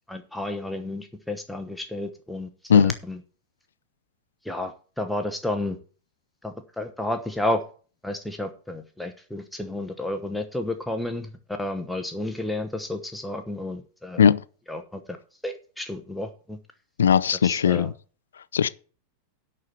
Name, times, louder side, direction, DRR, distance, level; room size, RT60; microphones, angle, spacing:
voice 1, 0.1-3.2 4.4-5.8 6.4-7.6 8.0-11.3 11.6-14.2 14.7-15.0 15.4-16.6 17.4-17.9, left 1 dB, ahead, 1.1 m, -31 dB
voice 2, 17.0-17.9 18.5-18.7, left 7 dB, 65° left, 0.5 m, -18 dB
11.0 x 4.4 x 7.9 m
figure-of-eight pair, 90°, 0 cm